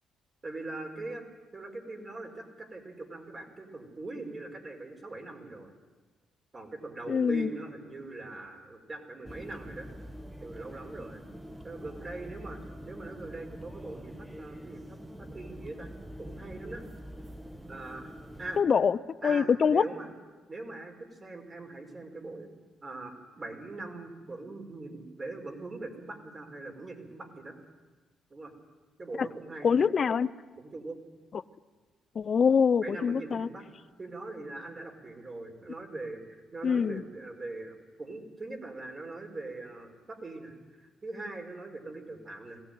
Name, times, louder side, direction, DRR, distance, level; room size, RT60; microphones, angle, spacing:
voice 1, 0.4-1.2 1.5-5.7 6.5-9.9 10.4-11.2 11.6-12.6 12.8-15.9 16.2-16.8 17.7-18.1 18.4-18.6 19.2-20.1 20.5-22.5 22.8-27.5 28.3-28.5 29.0-29.7 30.6-31.0 32.8-33.6 34.0-42.6, right 2 dB, 30° right, 2 dB, 4.9 m, -41 dB
voice 2, 7.1-7.5 18.6-19.0 19.2-19.8 29.2-29.3 29.6-30.3 32.2-33.5 36.6-37.0, left 6 dB, 45° left, 15 dB, 0.6 m, -24 dB
sound 1, 9.2-18.6, equal, 10° right, 1.3 m, -45 dB
21.0 x 16.5 x 9.3 m, 1.3 s
cardioid pair, 90°, 0 cm